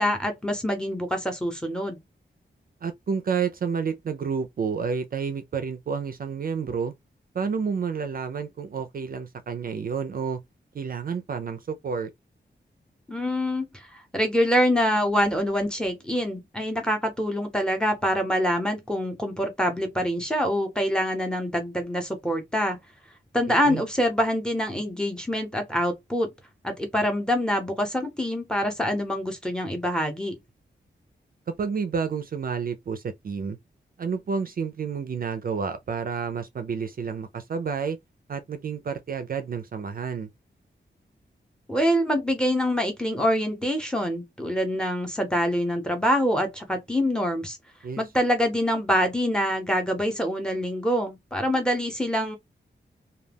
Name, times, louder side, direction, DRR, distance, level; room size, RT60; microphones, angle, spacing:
voice 1, 0.0-2.0 13.1-13.6 14.1-22.8 23.3-26.3 26.6-30.4 41.7-47.6 48.0-52.4, equal, 5° left, 0.7 m, -25 dB
voice 2, 2.8-6.9 7.3-10.4 10.7-12.1 23.5-23.8 31.6-33.6 34.0-38.0 38.3-40.3 47.8-48.0, right 6 dB, 50° right, 0.4 m, -30 dB
2.2 x 2.2 x 3.3 m
wide cardioid pair, 145°, 19 cm